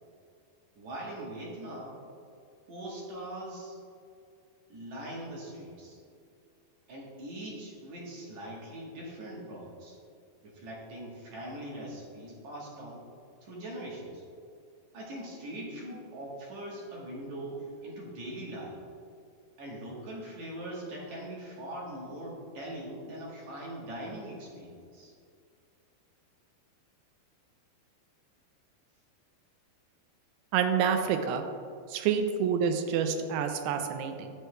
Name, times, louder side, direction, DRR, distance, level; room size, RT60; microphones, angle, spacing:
voice 1, 0.8-2.0 2.7-3.8 4.7-6.0 6.9-10.0 10.4-13.1 13.4-14.2 14.9-18.8 19.6-25.1, right 1 dB, 60° right, -4 dB, 2.0 m, -41 dB
voice 2, 30.5-31.4 31.9-34.3, right 7 dB, 85° right, 7 dB, 2.5 m, -28 dB
10.0 x 7.7 x 2.2 m, 2.4 s
omnidirectional pair, 4.6 m